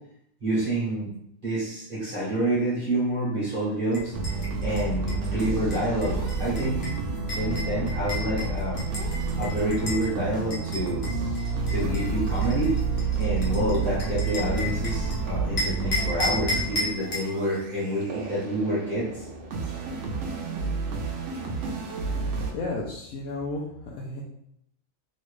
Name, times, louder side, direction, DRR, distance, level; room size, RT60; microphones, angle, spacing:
voice 1, 0.4-1.1 1.4-4.1 4.6-8.8 9.4-11.1 11.7-12.7 13.2-19.3, right 1 dB, 40° right, -9 dB, 1.2 m, -28 dB
sound 1, 3.9-10.1 10.5-15.2 15.6-17.3, left 2 dB, 45° left, 0.9 m, -34 dB
sound 2, 4.1-22.5, right 3 dB, 70° right, 0.9 m, -30 dB
voice 2, 22.5-24.2, left 2 dB, 90° left, -4 dB, 1.0 m, -33 dB
3.0 x 2.7 x 3.1 m, 0.75 s
omnidirectional pair, 1.4 m